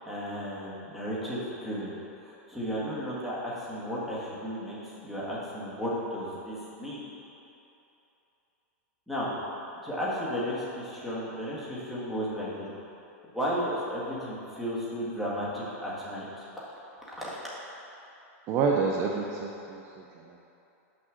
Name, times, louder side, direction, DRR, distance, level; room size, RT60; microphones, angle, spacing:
voice 1, 0.1-1.9 2.2-7.0 9.1-9.3 9.8-12.7 13.3-16.5 17.2-17.4, equal, ahead, -9 dB, 1.8 m, -34 dB
voice 2, 18.5-20.4, right 5 dB, 35° right, 0 dB, 0.5 m, -29 dB
6.3 x 5.4 x 6.3 m, 2.9 s
supercardioid pair, 145°, 8 cm